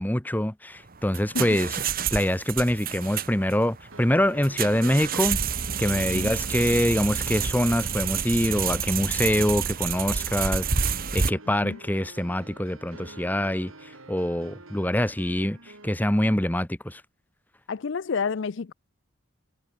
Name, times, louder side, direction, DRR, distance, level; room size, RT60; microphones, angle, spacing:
voice 1, 0.0-1.8 2.1-5.4 5.8-17.0, left 1 dB, 10° left, 1.1 m, -25 dB
sound 1, 0.9-11.3, right 6 dB, 45° right, 1.2 m, -29 dB
sound 2, 3.9-15.9, right 2 dB, 80° right, 7.0 m, -48 dB
voice 2, 17.7-18.7, left 5 dB, 60° left, 0.5 m, -29 dB
head